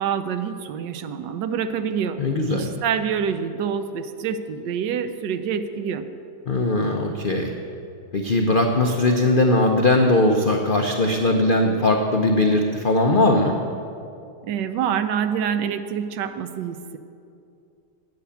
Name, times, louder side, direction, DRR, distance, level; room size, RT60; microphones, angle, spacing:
voice 1, 0.0-2.2 2.5-6.1 14.4-17.0, right 7 dB, 75° right, 10 dB, 1.2 m, -26 dB
voice 2, 2.2-2.7 6.5-7.5 8.1-13.5, left 2 dB, 60° left, 2 dB, 0.5 m, -19 dB
9.2 x 8.4 x 8.4 m, 2.6 s
omnidirectional pair, 2.0 m